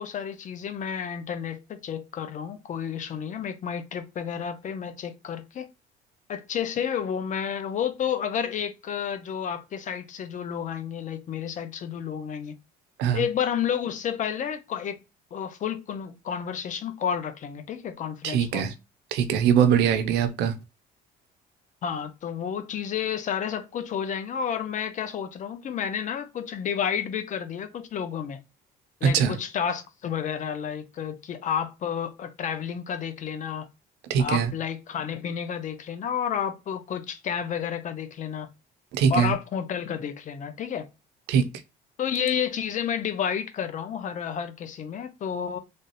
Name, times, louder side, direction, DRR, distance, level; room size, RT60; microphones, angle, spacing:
voice 1, 0.0-5.7 6.3-12.6 13.1-15.0 15.3-18.7 21.8-28.4 29.0-33.7 34.2-38.5 39.1-40.9 42.0-45.6, left 8 dB, 50° left, 0.7 m, -31 dB
voice 2, 18.2-18.7 19.1-20.5 29.0-29.4 34.1-34.5 38.9-39.3 41.3-41.4, right 8 dB, 85° right, 0.7 m, -22 dB
3.4 x 2.8 x 2.5 m
cardioid pair, 110°, 17 cm